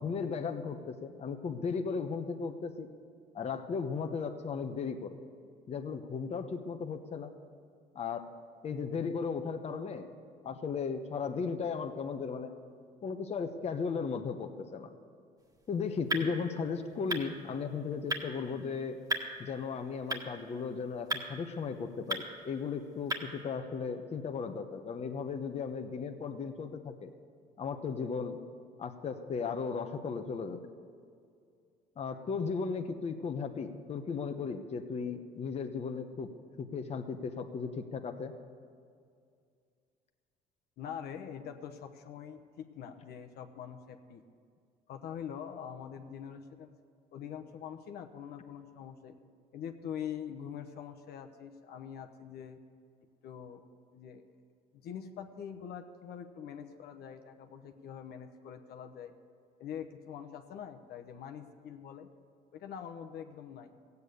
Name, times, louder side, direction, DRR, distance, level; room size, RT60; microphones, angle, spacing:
voice 1, 0.0-2.9 3.3-5.2 5.7-7.3 7.9-8.3 8.6-10.1 10.4-12.5 13.0-14.9 15.7-19.0 19.4-27.1 27.6-28.4 28.8-30.7 32.0-36.3 36.6-38.3, left 5 dB, 40° left, 5 dB, 1.0 m, -36 dB
sound 1, 15.4-23.4, right 1 dB, 20° right, 1.7 m, -40 dB
voice 2, 40.8-44.2 44.9-46.7 47.1-49.1 49.5-52.6 53.2-53.7 53.9-54.2 54.7-59.1 59.6-62.1 62.5-63.7, left 8 dB, 70° left, 6 dB, 1.0 m, -44 dB
15.5 x 8.3 x 8.2 m, 2.3 s
cardioid pair, 110°, 17 cm